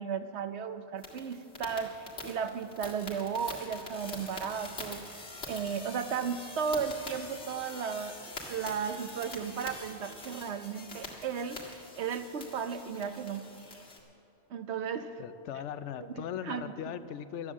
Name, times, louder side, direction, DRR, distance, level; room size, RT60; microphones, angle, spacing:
voice 1, 0.0-1.9 2.2-5.0 5.5-8.2 8.5-13.5 14.5-15.2 16.2-16.7, right 6 dB, 75° right, 9 dB, 1.0 m, -35 dB
sound 1, 1.0-14.0, left 2 dB, 70° left, 2.3 m, -45 dB
voice 2, 15.2-17.5, left 9 dB, 85° left, 12 dB, 0.9 m, -39 dB
12.5 x 10.0 x 7.2 m, 2.7 s
omnidirectional pair, 1.2 m